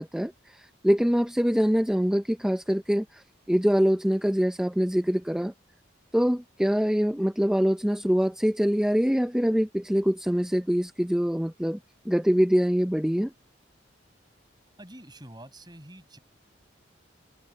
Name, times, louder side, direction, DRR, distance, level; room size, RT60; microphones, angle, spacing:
voice 1, 0.0-5.5 6.1-11.8 12.1-13.3, equal, 5° right, 0.5 m, -24 dB
voice 2, 14.8-16.2, right 1 dB, 20° right, 7.8 m, -46 dB
head